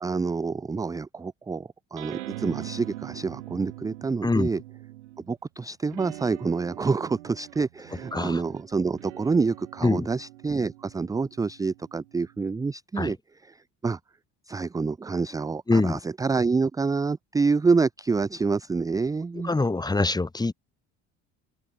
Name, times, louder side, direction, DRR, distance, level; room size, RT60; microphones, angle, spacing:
voice 1, 0.0-4.6 5.3-13.2 13.4-13.6 13.8-14.0 14.5-19.5, right 4 dB, 10° right, 0.4 m, -27 dB
sound 1, 2.0-5.3 5.9-12.6, right 17 dB, 90° right, 1.6 m, -43 dB
voice 2, 15.7-16.0 19.4-20.5, left 3 dB, 10° left, 1.0 m, -24 dB
open air
hypercardioid pair, 65°, 35 cm